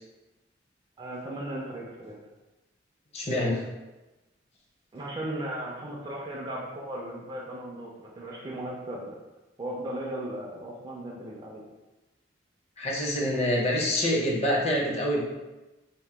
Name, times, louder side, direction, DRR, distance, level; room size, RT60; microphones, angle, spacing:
voice 1, 1.0-2.2 4.9-9.2 9.6-11.6, right 1 dB, 25° right, -4 dB, 0.3 m, -36 dB
voice 2, 3.1-3.6 12.8-15.2, left 1 dB, 35° left, -3 dB, 0.6 m, -26 dB
2.8 x 2.1 x 3.3 m, 1.1 s
head